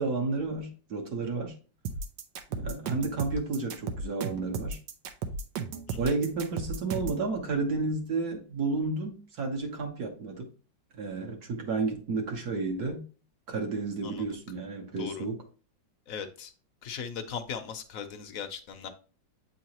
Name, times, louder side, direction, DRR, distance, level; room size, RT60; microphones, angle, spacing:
voice 1, 0.0-1.5 2.5-4.8 6.0-10.5 11.0-13.0 13.5-15.4, right 3 dB, 60° right, 2 dB, 1.7 m, -31 dB
sound 1, 1.9-7.2, right 4 dB, 80° right, 1.5 m, -34 dB
voice 2, 14.0-14.4 15.0-15.3 16.1-16.5 16.8-18.9, left 7 dB, 60° left, 7 dB, 1.0 m, -38 dB
8.3 x 3.9 x 2.9 m, 0.37 s
omnidirectional pair, 2.0 m